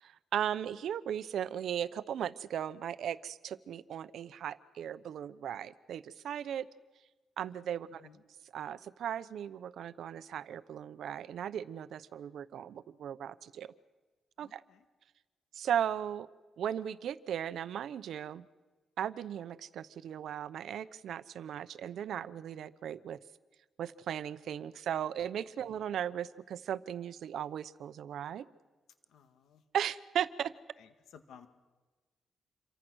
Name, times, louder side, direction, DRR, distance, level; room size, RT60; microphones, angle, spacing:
voice 1, 0.0-6.7 7.4-8.0 8.5-13.7 14.4-14.6 15.5-16.3 16.6-18.4 19.0-23.2 23.8-28.5 29.7-30.5, right 9 dB, 70° right, 15 dB, 0.8 m, -37 dB
voice 2, 7.9-8.2 14.4-14.9 25.6-25.7 29.1-29.6 30.8-31.5, left 7 dB, 85° left, 8 dB, 1.8 m, -57 dB
27.5 x 23.5 x 6.3 m, 1.3 s
wide cardioid pair, 160°, 0 cm